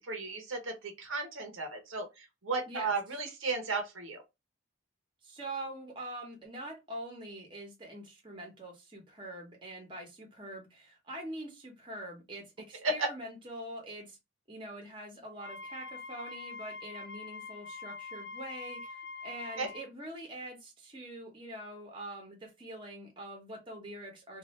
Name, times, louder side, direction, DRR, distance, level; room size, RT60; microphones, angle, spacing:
voice 1, 0.1-4.2 12.8-13.1 19.6-19.7, right 3 dB, 80° right, 0.9 m, -34 dB
voice 2, 5.2-14.2 14.5-24.4, right 1 dB, 25° right, 0.9 m, -44 dB
Wind instrument woodwind instrument, 15.3-19.8, left 4 dB, 65° left, 1.0 m, -44 dB
2.6 x 2.4 x 3.1 m
head